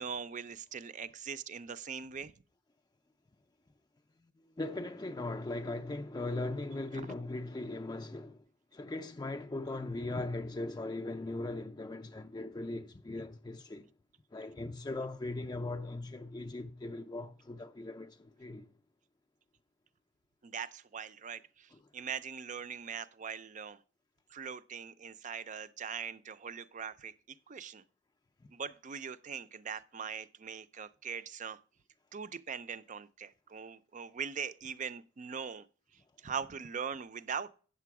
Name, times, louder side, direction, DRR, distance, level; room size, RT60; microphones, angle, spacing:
voice 1, 0.0-2.3 20.4-23.8 24.3-27.1 27.5-27.8 28.5-31.6 32.1-35.7 36.2-37.5, right 6 dB, 40° right, 0.4 m, -41 dB
voice 2, 4.2-8.4 8.7-13.9 14.3-18.7 21.7-21.8, left 2 dB, 20° left, 0.4 m, -39 dB
9.1 x 6.8 x 4.7 m
head